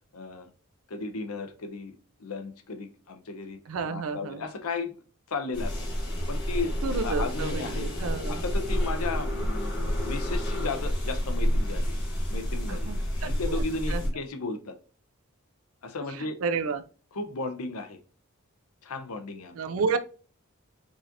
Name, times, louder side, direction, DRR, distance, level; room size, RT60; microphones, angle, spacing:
voice 1, 0.1-0.5 0.9-3.6 3.9-4.9 5.3-5.7 6.3-6.7 7.0-7.9 8.3-9.8 10.0-11.9 12.3-12.9 13.2-14.7 15.8-16.4 17.1-18.0 18.8-19.6, left 3 dB, 85° left, 0.7 m, -35 dB
voice 2, 3.7-4.4 6.8-8.4 12.7-13.6 13.9-14.0 16.2-16.8 19.6-20.0, right 5 dB, 75° right, 0.4 m, -31 dB
sound 1, 5.5-14.1, equal, 50° left, 1.3 m, -29 dB
4.7 x 2.8 x 2.5 m
head